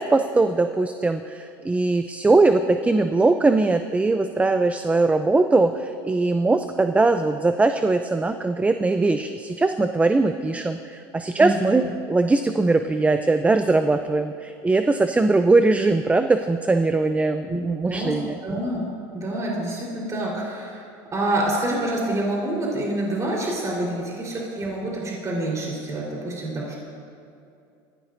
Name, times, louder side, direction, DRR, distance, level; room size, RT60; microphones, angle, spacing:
voice 1, 0.0-18.4, right 3 dB, 10° right, 8 dB, 0.5 m, -21 dB
voice 2, 11.4-11.9 17.5-17.6 17.8-18.2 18.4-18.8 19.1-26.7, right 1 dB, 25° right, -4 dB, 4.1 m, -27 dB
22.5 x 16.0 x 2.7 m, 2.6 s
supercardioid pair, 100°, 12 cm